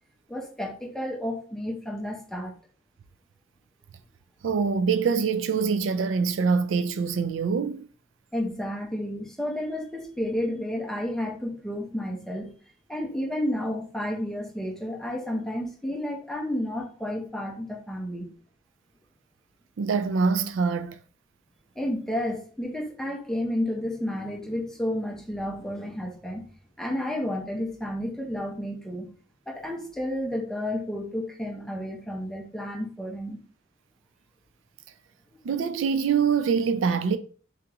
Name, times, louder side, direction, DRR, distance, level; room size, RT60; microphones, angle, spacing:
voice 1, 0.3-2.5 8.3-12.5 12.9-18.3 21.8-26.5 26.8-29.1 29.5-33.4, left 1 dB, 5° left, 0.7 m, -31 dB
voice 2, 4.4-7.8 19.8-21.0 35.4-37.2, right 5 dB, 70° right, 0.3 m, -24 dB
3.6 x 3.5 x 2.9 m
head